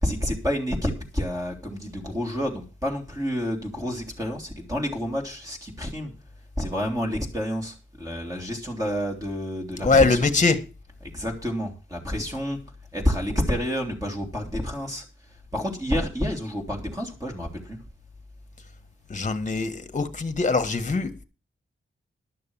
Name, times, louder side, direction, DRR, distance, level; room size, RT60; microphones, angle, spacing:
voice 1, 0.0-6.1 6.6-10.3 11.1-12.6 12.9-15.0 15.5-17.8, equal, 15° right, 3.4 m, -29 dB
voice 2, 9.8-10.6 19.1-21.2, left 3 dB, 35° left, 1.5 m, -22 dB
12.0 x 6.7 x 7.2 m
wide cardioid pair, 125°, 21 cm